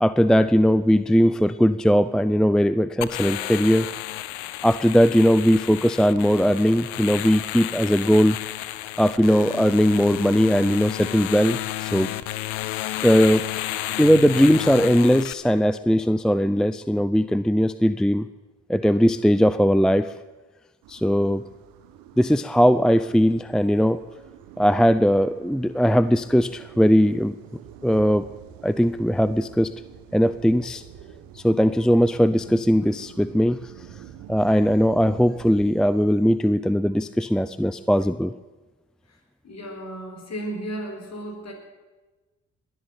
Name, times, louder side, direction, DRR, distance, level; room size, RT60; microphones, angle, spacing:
voice 1, 0.0-3.9 4.6-8.4 9.0-12.1 13.0-13.5 14.0-18.3 18.7-20.1 20.9-21.4 22.2-24.0 24.6-27.3 27.8-28.3 28.6-29.7 30.1-30.8 31.4-33.6 34.3-38.3, equal, ahead, 15 dB, 0.5 m, -19 dB
sound 1, 3.0-15.3, left 15 dB, 85° left, 0.6 m, -32 dB
sound 2, 20.8-35.7, right 10 dB, 75° right, 1.1 m, -47 dB
voice 2, 39.4-41.5, right 1 dB, 45° left, 3 dB, 4.4 m, -34 dB
20.5 x 7.6 x 9.0 m, 1.2 s
hypercardioid pair, 45°, 35 cm